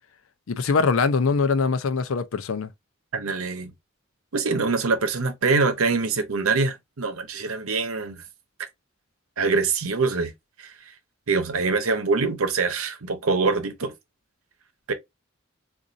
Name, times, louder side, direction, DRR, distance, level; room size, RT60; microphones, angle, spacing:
voice 1, 0.5-2.7, left 4 dB, 75° left, 0.5 m, -22 dB
voice 2, 3.1-3.7 4.3-8.2 9.4-10.3 10.6-10.7 11.3-13.9 14.9-15.0, right 4 dB, 85° right, 0.8 m, -24 dB
4.0 x 2.5 x 2.4 m
head